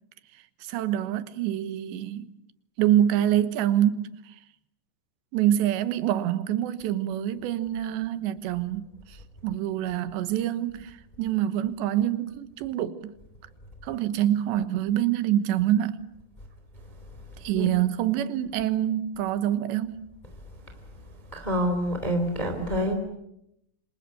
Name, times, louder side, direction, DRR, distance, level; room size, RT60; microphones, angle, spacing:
voice 1, 0.6-2.3 2.8-4.2 5.3-9.2 9.4-13.1 13.8-16.1 17.4-20.1, right 11 dB, 70° right, 3.1 m, -26 dB
voice 2, 21.3-22.9, equal, 10° left, 2.4 m, -27 dB
27.5 x 26.5 x 7.8 m
omnidirectional pair, 5.7 m